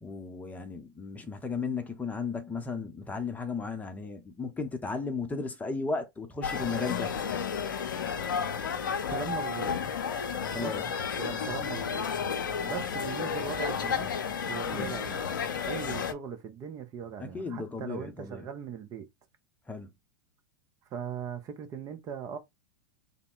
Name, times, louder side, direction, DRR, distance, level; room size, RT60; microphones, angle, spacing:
voice 1, 0.0-7.1 10.5-10.9 14.6-14.9 17.2-18.5 19.7-19.9, left 4 dB, 15° left, 0.7 m, -35 dB
sound 1, 6.4-16.1, left 6 dB, 75° left, 0.5 m, -32 dB
voice 2, 9.1-10.0 10.5-10.7 11.2-12.0 12.6-14.1 14.5-15.3 15.7-19.1 20.9-22.4, right 7 dB, 35° right, 0.8 m, -39 dB
3.5 x 2.1 x 3.8 m
hypercardioid pair, 95°, 11 cm